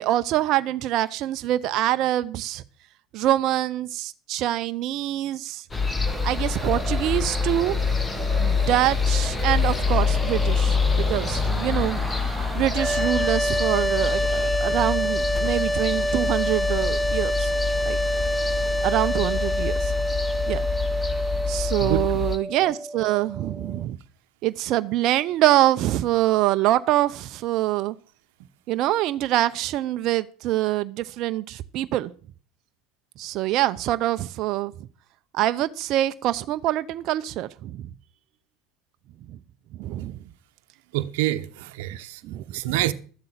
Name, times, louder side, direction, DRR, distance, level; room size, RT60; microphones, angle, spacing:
voice 1, 0.0-2.6 3.1-5.6 6.2-7.8 8.4-17.5 17.8-18.0 18.8-19.9 20.5-20.6 21.5-24.0 24.4-27.9 28.7-32.1 33.2-34.7 35.3-37.8 39.3-39.4 39.8-40.2 42.2-42.8, right 14 dB, 55° right, 0.7 m, -25 dB
sound 1, 5.7-22.4, left 5 dB, 20° left, 1.9 m, -26 dB
sound 2, 6.0-13.1, right 7 dB, 30° right, 1.5 m, -37 dB
sound 3, 12.7-23.8, right 1 dB, ahead, 0.9 m, -27 dB
voice 2, 40.9-42.2 42.5-42.9, right 15 dB, 75° right, 1.0 m, -26 dB
13.0 x 7.8 x 7.4 m
hypercardioid pair, 85°, 0 cm